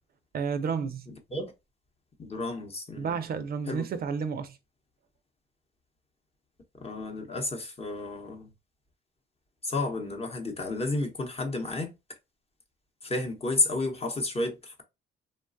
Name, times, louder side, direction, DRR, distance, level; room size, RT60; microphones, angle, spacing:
voice 1, 0.3-1.1 3.0-4.6, right 6 dB, 50° right, 0.4 m, -31 dB
voice 2, 1.1-1.5 2.2-3.2 3.7-3.9 6.8-8.5 9.6-11.9 13.0-14.8, left 2 dB, 30° left, 0.8 m, -31 dB
3.1 x 2.2 x 2.5 m
cardioid pair, 90°, 20 cm